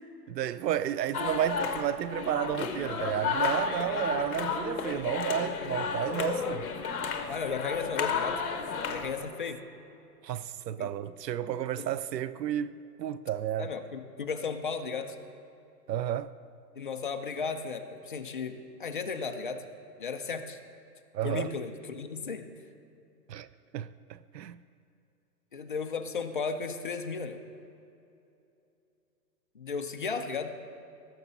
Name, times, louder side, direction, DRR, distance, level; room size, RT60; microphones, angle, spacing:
voice 1, 0.3-6.7 10.2-13.7 15.9-16.3 21.1-21.5 23.3-23.5 23.7-24.6, right 11 dB, 80° right, 0.6 m, -32 dB
sound 1, 1.1-9.3, left 5 dB, 60° left, 1.3 m, -32 dB
voice 2, 7.3-8.4 8.9-9.6 10.8-10.9 11.8-11.9 13.6-15.2 16.8-19.6 20.0-20.6 21.2-22.5 25.5-27.4 29.6-30.5, left 5 dB, 35° left, 0.4 m, -35 dB
18.5 x 7.5 x 4.0 m
hypercardioid pair, 155°, 49 cm